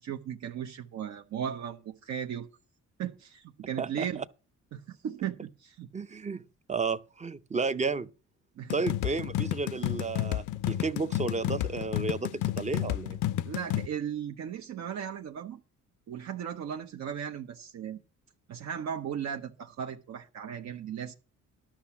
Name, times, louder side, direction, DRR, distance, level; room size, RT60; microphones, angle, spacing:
voice 1, 0.0-2.5 3.0-4.2 4.7-5.9 8.6-8.7 13.4-15.6 16.1-18.0 18.5-21.1, right 8 dB, 65° right, 0.9 m, -36 dB
voice 2, 3.8-4.2 5.9-6.4 6.7-8.1 8.7-13.2, right 4 dB, 25° right, 0.6 m, -32 dB
sound 1, 8.7-13.9, left 13 dB, 75° left, 0.5 m, -31 dB
11.5 x 5.9 x 7.1 m
cardioid pair, 90°, 30 cm